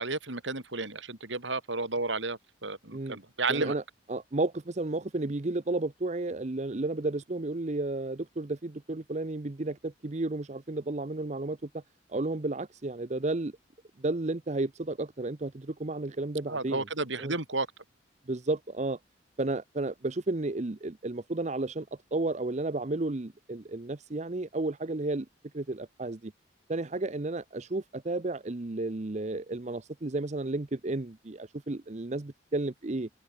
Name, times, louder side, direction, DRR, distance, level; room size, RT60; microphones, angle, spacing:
voice 1, 0.0-3.7 16.5-17.7, right 3 dB, 70° right, 3.9 m, -32 dB
voice 2, 3.5-3.8 4.1-11.8 12.1-13.5 14.0-16.9 17.2-17.3 18.3-19.0 19.4-21.9 22.1-25.3 25.5-26.3 26.7-33.1, right 2 dB, 35° right, 0.7 m, -32 dB
head